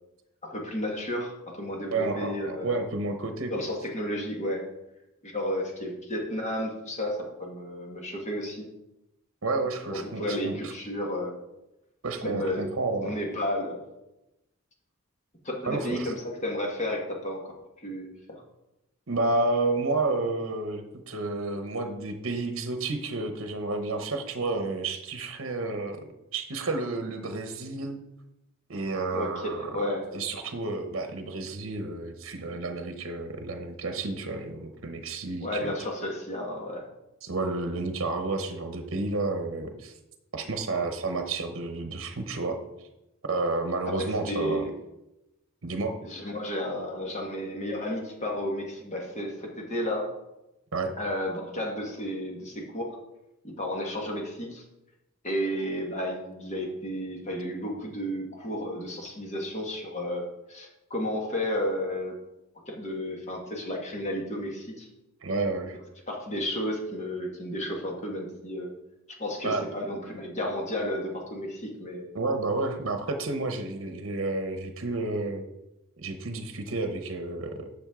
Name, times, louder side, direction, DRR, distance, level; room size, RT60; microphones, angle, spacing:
voice 1, 0.4-2.8 3.5-4.6 5.2-8.7 9.9-11.4 12.2-12.7 13.0-13.9 15.4-17.5 17.8-18.4 29.1-30.1 35.4-36.9 43.9-44.7 46.0-50.1 51.0-52.9 53.4-54.6 55.2-62.2 62.7-64.9 66.1-68.7 69.1-72.1, left 1 dB, 35° left, 0 dB, 1.7 m, -32 dB
voice 2, 1.9-3.7 9.4-10.7 12.0-13.1 15.6-16.1 19.1-28.0 28.7-29.6 30.1-35.7 37.2-39.9 40.3-42.9 43.2-44.7 45.6-46.0 50.7-50.9 65.2-65.8 69.4-69.6 72.1-75.5 76.0-77.7, right 3 dB, 65° right, 6 dB, 0.9 m, -31 dB
10.5 x 6.4 x 3.7 m, 0.93 s
head